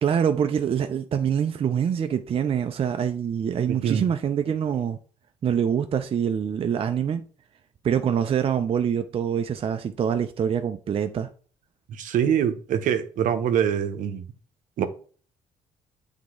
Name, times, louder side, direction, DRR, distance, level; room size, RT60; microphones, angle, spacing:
voice 1, 0.0-5.0 5.4-7.2 7.8-11.3, right 8 dB, 45° right, 0.5 m, -25 dB
voice 2, 3.7-4.0 11.9-14.3 14.8-14.9, right 9 dB, 70° right, 0.8 m, -24 dB
7.6 x 3.5 x 3.7 m
supercardioid pair, 75°, 14 cm